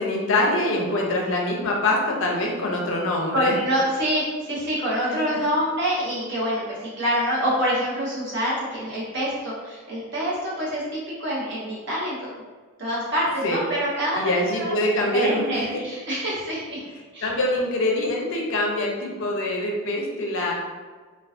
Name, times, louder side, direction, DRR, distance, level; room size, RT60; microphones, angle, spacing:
voice 1, 0.0-3.6 5.1-5.4 13.4-13.6 14.1-15.8 17.2-20.5, left 1 dB, 55° left, -1 dB, 0.4 m, -24 dB
voice 2, 3.3-12.2 12.8-16.8 17.1-17.3, equal, 50° right, -7 dB, 0.8 m, -26 dB
2.2 x 2.2 x 2.4 m, 1.4 s
head